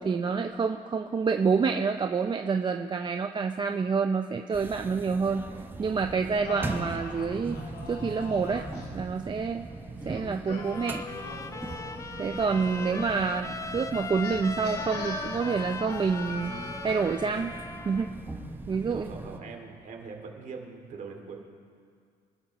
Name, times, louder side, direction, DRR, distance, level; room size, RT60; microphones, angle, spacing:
voice 1, 0.0-5.4 5.8-7.6 7.9-8.6 8.9-9.7 10.1-11.0 12.2-16.6 16.8-17.5 17.9-18.1 18.7-19.1, right 5 dB, 25° right, 5 dB, 0.5 m, -28 dB
sound 1, 4.5-19.4, right 2 dB, 10° right, 0.9 m, -40 dB
Singing, 6.1-8.9 10.0-13.2 14.2-17.3, left 4 dB, 65° left, 2.5 m, -41 dB
Trumpet, 10.6-18.1, left 3 dB, 20° left, 0.6 m, -40 dB
voice 2, 18.9-21.4, right 4 dB, 50° right, 2 dB, 2.4 m, -42 dB
25.0 x 12.5 x 3.0 m, 2.1 s
cardioid pair, 110°, 17 cm